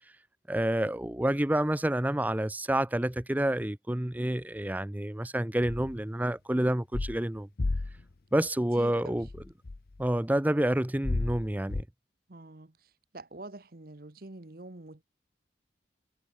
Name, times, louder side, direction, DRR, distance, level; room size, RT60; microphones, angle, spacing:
voice 1, 0.5-7.5 8.3-9.3 10.0-11.8, right 1 dB, 10° right, 0.5 m, -28 dB
sound 1, 5.6-6.0 6.9-7.2 7.6-8.0 9.2-10.1 11.0-11.8, left 2 dB, 55° left, 0.7 m, -32 dB
voice 2, 8.8-9.2 12.3-12.7 13.1-15.0, right 2 dB, 55° right, 1.1 m, -45 dB
head